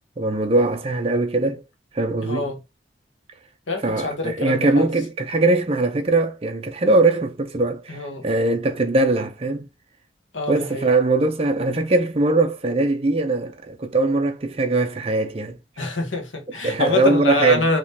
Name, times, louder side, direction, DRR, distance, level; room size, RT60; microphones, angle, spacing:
voice 1, 0.2-1.6 1.9-2.5 3.8-9.7 10.5-15.6 16.6-17.7, right 2 dB, 30° right, 0.4 m, -21 dB
voice 2, 2.2-2.6 3.7-4.9 7.9-8.2 10.3-10.9 15.8-17.8, left 3 dB, 85° left, 1.1 m, -25 dB
3.6 x 2.9 x 2.7 m
head